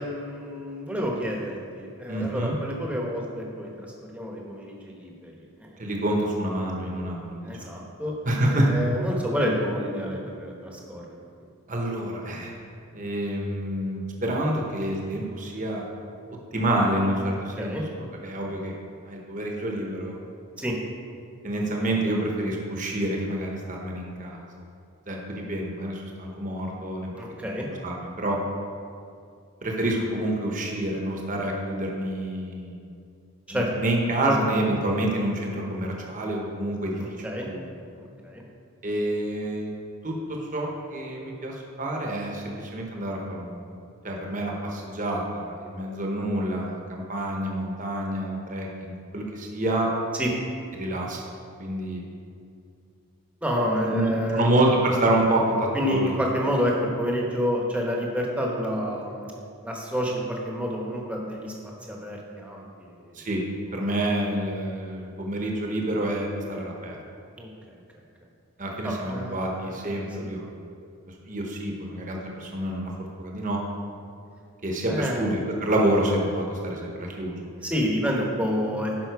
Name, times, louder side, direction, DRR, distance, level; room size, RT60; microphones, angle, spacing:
voice 1, 0.0-3.9 4.1-5.7 7.4-8.1 8.4-11.2 17.3-17.8 20.6-20.7 27.2-27.7 33.5-33.7 34.2-34.3 37.0-37.5 38.0-38.4 50.1-50.3 53.4-54.7 55.7-59.3 59.6-63.2 67.4-67.8 68.8-70.3 74.9-75.2 77.6-78.9, equal, 5° right, -1 dB, 1.0 m, -29 dB
voice 2, 2.1-2.6 5.8-7.5 8.2-8.7 11.7-12.5 12.9-15.9 16.5-17.8 18.2-18.8 19.1-20.2 21.4-24.4 25.1-27.2 27.8-28.4 29.6-32.8 33.5-37.0 37.5-37.7 38.8-39.7 40.0-43.8 44.0-49.9 50.7-51.2 51.6-52.0 53.8-56.1 63.1-63.4 63.7-67.0 68.6-70.5 71.3-73.6 74.6-77.5, right 1 dB, 35° right, -1 dB, 1.0 m, -27 dB
11.5 x 5.5 x 4.7 m, 2.5 s
head